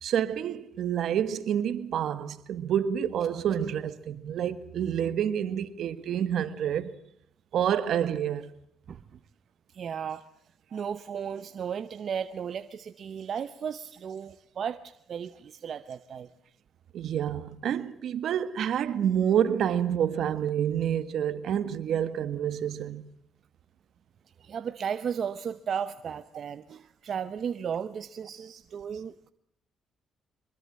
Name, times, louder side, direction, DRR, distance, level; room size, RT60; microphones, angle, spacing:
voice 1, 0.0-6.9 7.5-8.5 10.7-10.8 16.9-23.0, right 9 dB, 70° right, 1.6 m, -28 dB
voice 2, 8.9-9.2 9.7-10.2 10.7-16.3 24.4-29.3, right 7 dB, 55° right, 0.9 m, -35 dB
23.5 x 22.0 x 7.5 m
cardioid pair, 90°, 0 cm